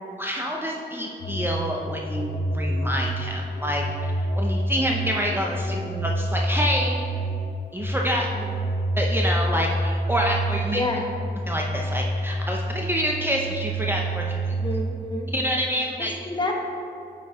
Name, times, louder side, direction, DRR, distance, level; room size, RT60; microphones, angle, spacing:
voice 1, 0.2-5.8 6.0-7.0 7.7-8.3 9.0-10.8 11.5-14.4 15.3-16.1, equal, 10° right, -1 dB, 0.6 m, -27 dB
sound 1, 1.2-14.8, right 1 dB, 80° left, 0.7 m, -28 dB
voice 2, 5.7-6.1 8.4-8.6 10.7-11.1 14.5-15.3 16.2-16.5, left 2 dB, 25° left, 0 dB, 1.0 m, -29 dB
9.0 x 4.6 x 3.6 m, 2.6 s
wide cardioid pair, 80°, 18 cm